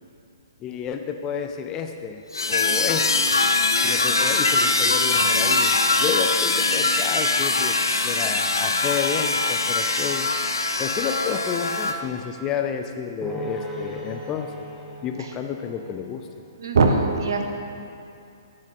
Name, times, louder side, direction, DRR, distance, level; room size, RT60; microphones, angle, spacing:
voice 1, 0.6-3.3 3.8-10.3 10.8-14.6 15.0-16.3, left 7 dB, 25° left, 6 dB, 0.4 m, -30 dB
sound 1, 2.3-11.9, left 3 dB, 90° left, 0.5 m, -22 dB
sound 2, 13.2-16.5, equal, 5° left, 0.8 m, -37 dB
voice 2, 16.6-17.4, right 3 dB, 70° right, 4 dB, 0.8 m, -20 dB
8.9 x 4.2 x 3.8 m, 2.6 s
hypercardioid pair, 130°, 2 cm